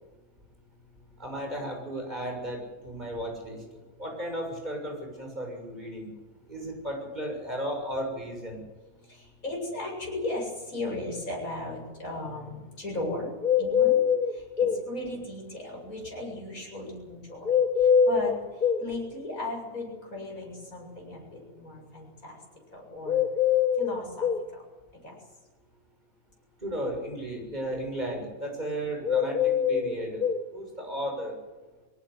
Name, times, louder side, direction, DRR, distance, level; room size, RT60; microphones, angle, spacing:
voice 1, 1.2-3.6 4.0-6.1 6.5-8.6 26.6-30.2 30.5-31.3, right 1 dB, 30° right, 2 dB, 7.0 m, -34 dB
voice 2, 9.1-13.3 13.6-14.0 14.6-17.5 18.1-18.3 18.8-22.3 22.7-23.2 23.8-24.3 25.0-25.2, left 2 dB, 80° left, -1 dB, 8.3 m, -36 dB
sound 1, 13.4-14.8 17.4-18.8 23.1-24.5 29.0-30.4, left 8 dB, 35° left, 1.4 m, -23 dB
22.0 x 18.0 x 9.6 m, 1.2 s
omnidirectional pair, 1.5 m